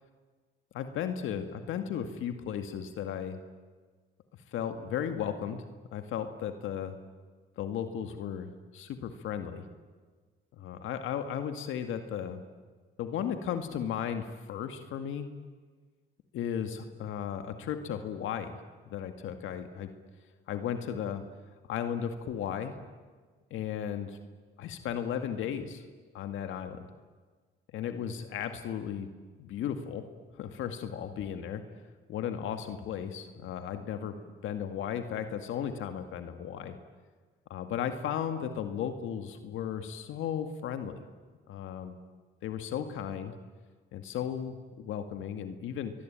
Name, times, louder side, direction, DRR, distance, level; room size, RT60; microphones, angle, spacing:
voice 1, 0.7-3.4 4.5-5.6 5.9-7.0 7.6-9.6 10.5-12.4 13.0-15.3 16.3-18.6 18.9-19.9 20.5-21.2 21.7-22.7 23.5-24.2 24.6-25.8 26.1-26.8 27.7-29.1 29.4-30.0 30.3-31.6 32.1-34.1 34.4-36.8 37.5-41.0 41.5-42.0 42.4-43.3 43.9-45.9, left 8 dB, 85° left, 7 dB, 2.1 m, -35 dB
29.5 x 22.5 x 9.0 m, 1.4 s
cardioid pair, 90°, 20 cm